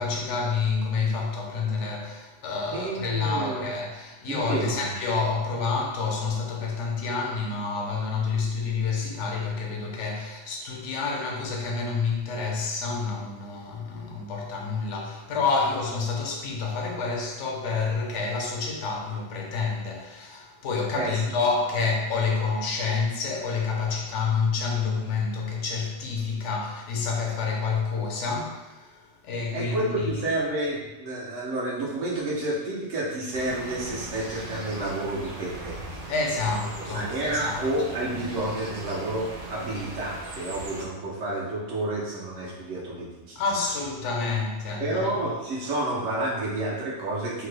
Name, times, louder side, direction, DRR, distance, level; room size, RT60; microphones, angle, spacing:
voice 1, 0.0-30.1 36.1-37.6 43.4-45.1, left 4 dB, 75° left, 0.9 m, -28 dB
voice 2, 2.7-3.7 4.3-4.9 20.9-21.2 29.5-36.1 36.8-43.4 44.8-47.5, right 1 dB, 90° right, 1.2 m, -30 dB
sound 1, 33.3-40.9, right 2 dB, 55° right, 0.7 m, -39 dB
3.0 x 2.2 x 3.2 m
omnidirectional pair, 1.2 m